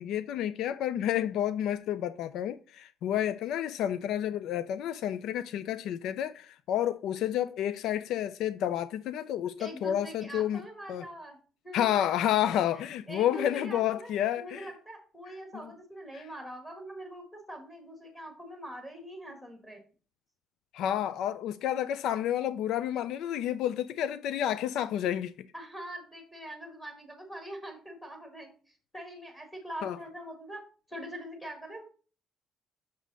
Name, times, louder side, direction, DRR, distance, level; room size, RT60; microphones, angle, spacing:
voice 1, 0.0-10.6 10.9-11.0 11.7-14.7 15.5-15.7 16.1-16.2 20.7-25.3 29.8-30.0, left 11 dB, 70° left, 0.4 m, -30 dB
voice 2, 9.6-11.4 11.6-11.9 12.7-19.8 25.5-30.6 30.9-31.8, right 1 dB, 10° left, 1.6 m, -43 dB
6.3 x 6.2 x 4.0 m
cardioid pair, 175°, 0 cm